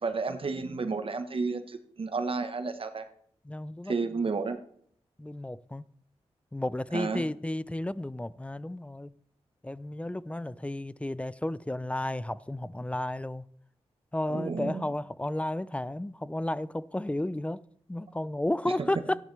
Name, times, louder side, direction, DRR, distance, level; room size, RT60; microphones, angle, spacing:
voice 1, 0.0-3.1 3.8-4.6 6.9-7.3 14.3-14.9 18.8-18.9, right 4 dB, 55° right, 1.1 m, -31 dB
voice 2, 3.5-3.9 5.2-5.8 6.5-9.1 9.6-13.4 14.1-17.6 17.9-19.2, left 1 dB, 10° left, 0.5 m, -32 dB
13.5 x 10.0 x 3.3 m
cardioid pair, 50°, 11 cm